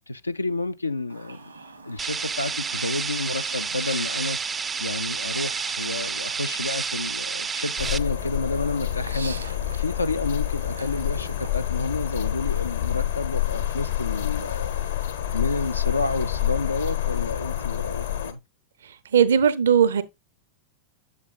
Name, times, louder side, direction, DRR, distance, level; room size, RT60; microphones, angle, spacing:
voice 1, 0.1-1.5 1.8-4.4 4.8-14.7 15.1-18.4, left 3 dB, 80° left, 0.3 m, -30 dB
Chirp tweet, 1.1-11.5, right 3 dB, 85° right, 1.3 m, -44 dB
sound 1, 2.0-8.0, right 5 dB, 20° right, 0.4 m, -30 dB
sound 2, 7.8-18.3, left 12 dB, 65° left, 0.9 m, -28 dB
voice 2, 19.1-20.0, right 8 dB, 65° right, 0.6 m, -18 dB
7.9 x 7.3 x 2.3 m
figure-of-eight pair, 90°, 0 cm